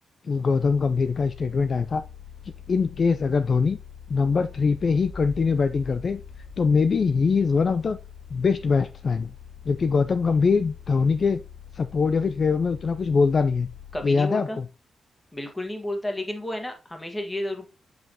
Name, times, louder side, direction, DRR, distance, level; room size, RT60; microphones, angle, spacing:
voice 1, 0.2-2.0 2.4-3.8 4.1-6.2 6.6-8.0 8.3-9.3 9.6-11.4 11.7-13.7 14.0-14.6, left 5 dB, 40° left, 11 dB, 0.4 m, -23 dB
sound 1, 0.5-14.1, left 8 dB, 60° left, 0.9 m, -45 dB
sound 2, 4.7-7.3, right 1 dB, 15° right, 0.9 m, -44 dB
voice 2, 13.9-14.6 15.3-17.7, left 1 dB, 15° left, 5 dB, 1.5 m, -31 dB
7.7 x 5.4 x 2.9 m, 0.29 s
wide cardioid pair, 155°, 0 cm